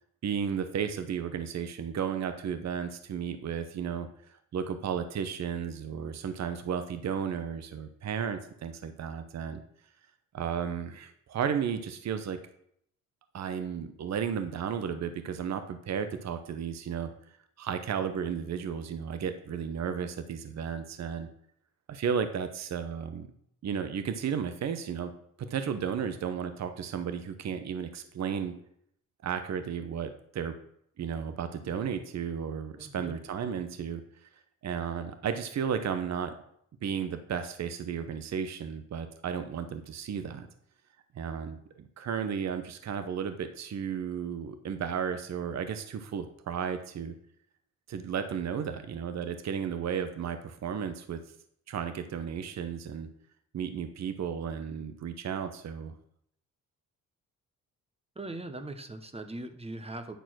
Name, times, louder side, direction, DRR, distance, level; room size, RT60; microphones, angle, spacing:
voice 1, 0.2-4.1 4.5-9.6 10.3-12.4 13.3-17.1 17.6-21.3 21.9-23.3 23.6-25.1 25.5-28.5 29.2-30.5 31.0-34.3 34.6-36.3 36.8-40.5 41.1-47.1 47.9-51.2 51.7-53.1 53.5-55.9, right 7 dB, 55° right, 9 dB, 0.9 m, -33 dB
voice 2, 32.8-33.1 58.1-60.2, right 2 dB, 20° right, 7 dB, 1.0 m, -40 dB
9.3 x 4.2 x 6.1 m, 0.70 s
cardioid pair, 70°, 33 cm